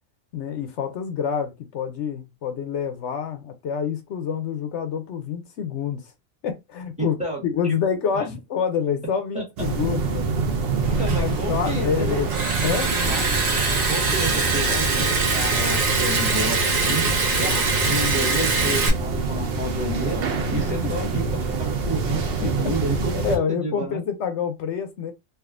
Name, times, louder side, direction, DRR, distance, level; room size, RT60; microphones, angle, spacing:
voice 1, 0.3-6.1 6.4-7.2 7.4-10.3 11.1-12.9 20.6-20.9 22.4-22.7 23.1-25.1, left 7 dB, 65° left, 0.8 m, -27 dB
voice 2, 7.0-7.4 8.1-8.4 9.3-9.4 11.0-12.2 13.0-13.3 13.9-20.2 20.5-24.0, right 1 dB, 5° right, 1.1 m, -30 dB
sound 1, 9.6-23.4, right 3 dB, 55° right, 0.8 m, -26 dB
Liquid, 10.8-18.9, right 4 dB, 85° right, 1.4 m, -24 dB
3.5 x 2.5 x 2.4 m
omnidirectional pair, 1.4 m